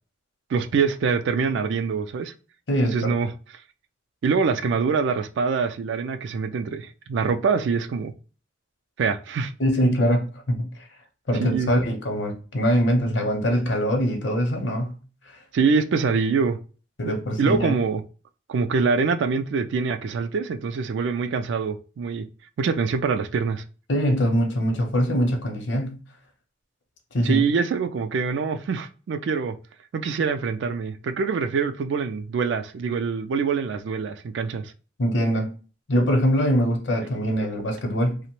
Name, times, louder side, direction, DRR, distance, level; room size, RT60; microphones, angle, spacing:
voice 1, 0.5-2.3 2.8-3.3 4.2-8.1 9.0-9.5 11.4-11.7 15.5-16.6 17.1-18.0 18.5-22.3 22.6-23.6 27.2-29.6 29.9-34.7, right 5 dB, 70° right, 0.3 m, -24 dB
voice 2, 2.7-3.1 9.6-10.7 11.3-15.0 17.0-17.7 23.9-26.0 27.1-27.4 35.0-35.5 35.9-38.2, equal, 70° left, 0.7 m, -23 dB
2.8 x 2.1 x 2.9 m
head